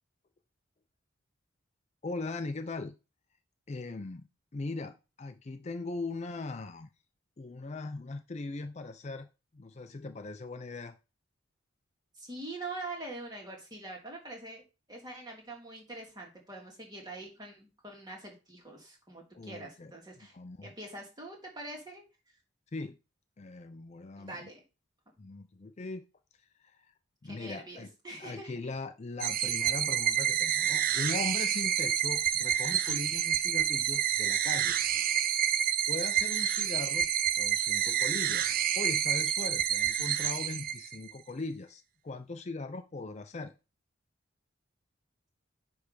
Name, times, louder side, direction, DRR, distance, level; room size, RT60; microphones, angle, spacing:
voice 1, 2.0-2.9 3.7-4.3 4.5-6.9 7.4-9.3 9.5-11.0 19.3-19.9 20.3-20.7 22.7-23.0 23.4-24.5 25.2-26.1 26.6-26.9 27.2-27.9 28.2-34.8 35.2-35.5 35.9-37.1 37.4-43.5, left 3 dB, 35° left, 8 dB, 0.4 m, -39 dB
voice 2, 12.2-14.6 14.9-20.3 20.6-22.0 24.2-24.6 27.2-28.5, right 2 dB, 20° right, 0 dB, 2.4 m, -44 dB
sound 1, 29.2-41.1, right 10 dB, 45° right, 0.4 m, -29 dB
9.6 x 3.3 x 5.2 m, 0.29 s
head